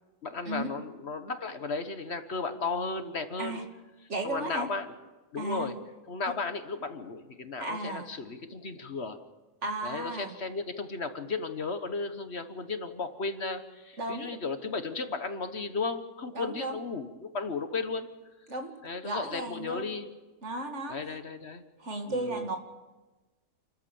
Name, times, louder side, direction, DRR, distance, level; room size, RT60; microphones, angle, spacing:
voice 1, 0.2-3.6 4.2-4.9 5.3-5.7 6.1-9.2 9.8-18.1 18.8-20.1 20.9-21.6 22.1-22.4, left 4 dB, 55° left, 9 dB, 1.5 m, -35 dB
voice 2, 4.1-4.7 5.4-5.7 7.6-8.1 9.6-10.4 14.0-14.4 16.3-16.8 18.5-18.7 19.0-19.9 20.4-21.0 21.8-22.6, right 2 dB, 60° right, 4 dB, 2.6 m, -34 dB
29.0 x 14.0 x 7.1 m, 1.2 s
omnidirectional pair, 1.4 m